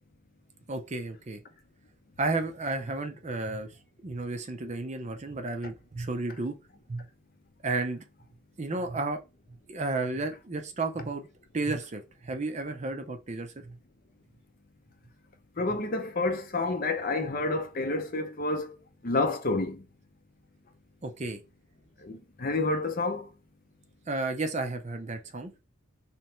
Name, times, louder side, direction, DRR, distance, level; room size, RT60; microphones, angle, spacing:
voice 1, 0.7-1.4 2.2-3.7 4.0-6.5 6.9-7.1 7.6-8.0 8.6-9.2 9.7-11.3 11.5-13.8 21.0-21.4 24.1-25.5, right 3 dB, 30° right, 0.5 m, -32 dB
voice 2, 15.6-18.8 19.0-19.8 22.0-23.3, left 2 dB, 40° left, 0.6 m, -29 dB
3.3 x 3.0 x 4.4 m
head